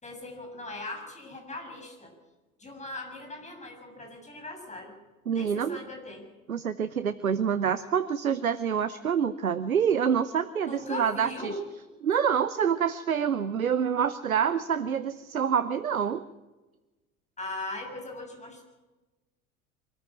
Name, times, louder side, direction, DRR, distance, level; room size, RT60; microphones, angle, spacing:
voice 1, 0.0-2.1 2.6-4.9 5.3-6.3 10.7-11.6 17.4-18.6, left 1 dB, 15° left, 3 dB, 7.2 m, -39 dB
voice 2, 5.3-5.8 6.5-11.5 12.0-16.2, right 7 dB, 85° right, 14 dB, 0.8 m, -27 dB
24.5 x 14.0 x 8.8 m, 1.1 s
figure-of-eight pair, 70°, 41 cm